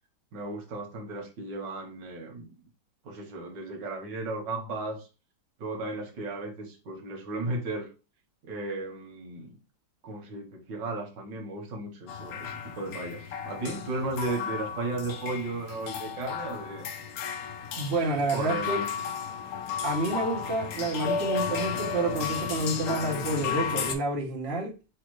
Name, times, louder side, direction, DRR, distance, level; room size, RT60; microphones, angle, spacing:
voice 1, 0.3-2.5 3.1-5.1 5.6-7.9 8.4-9.6 10.0-16.9 18.3-18.9, right 2 dB, 85° right, 1.8 m, -35 dB
sound 1, 12.1-23.9, left 6 dB, 65° left, 1.0 m, -33 dB
voice 2, 17.7-18.8 19.8-24.7, right 2 dB, 45° right, 1.1 m, -29 dB
6.2 x 2.4 x 3.1 m
omnidirectional pair, 1.8 m